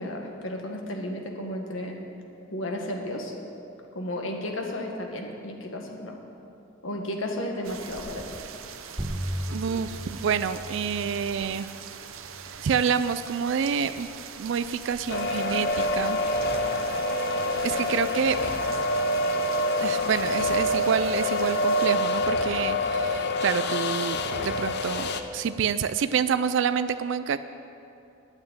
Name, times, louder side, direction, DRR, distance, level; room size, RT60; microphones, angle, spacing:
voice 1, 0.0-2.0 2.5-3.3 3.9-6.2 6.8-8.3, left 1 dB, 75° left, 2 dB, 1.6 m, -33 dB
sound 1, 7.6-21.9, right 7 dB, 90° right, 0.7 m, -42 dB
sound 2, 9.0-14.0, equal, 20° right, 0.7 m, -38 dB
voice 2, 9.5-11.7 12.4-14.1 14.4-16.2 17.6-18.4 19.8-27.4, right 7 dB, 65° right, 12 dB, 0.3 m, -28 dB
sound 3, 15.1-25.2, left 1 dB, 55° left, 0.6 m, -26 dB
8.8 x 8.7 x 8.6 m, 2.8 s
head